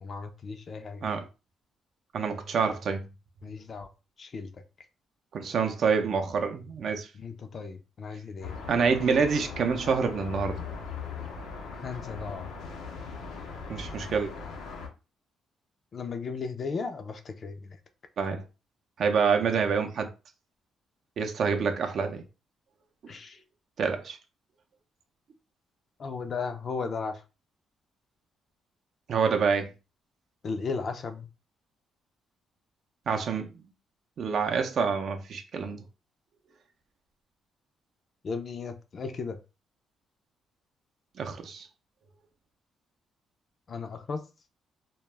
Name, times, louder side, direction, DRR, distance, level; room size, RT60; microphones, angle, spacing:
voice 1, 0.0-1.1 3.4-3.9 4.2-4.6 7.1-8.5 11.7-12.5 15.9-17.8 23.1-23.4 26.0-27.2 30.4-31.3 38.2-39.4 43.7-44.2, left 4 dB, 45° left, 0.4 m, -35 dB
voice 2, 2.1-3.1 5.3-7.1 8.7-10.6 13.7-14.3 18.2-18.4 19.0-20.1 21.2-22.2 23.8-24.2 29.1-29.7 33.1-33.5 34.2-35.8 41.2-41.7, right 5 dB, 60° right, 0.5 m, -27 dB
sound 1, 8.4-14.9, left 5 dB, 85° left, 0.6 m, -39 dB
2.2 x 2.0 x 3.2 m
cardioid pair, 90°, 0 cm